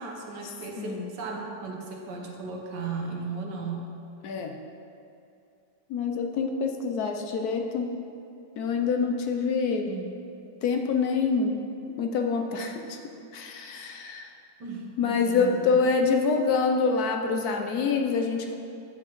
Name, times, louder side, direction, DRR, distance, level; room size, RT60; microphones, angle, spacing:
voice 1, 0.0-3.9 9.8-10.2 14.6-15.7, right 4 dB, 85° right, 0 dB, 1.6 m, -36 dB
voice 2, 0.8-1.1 4.2-4.5 5.9-7.9 8.6-9.9 10.6-11.6 12.0-13.0 13.3-14.3 15.0-18.5, left 5 dB, 70° left, 3 dB, 1.0 m, -26 dB
9.6 x 7.6 x 3.1 m, 2.6 s
omnidirectional pair, 1.8 m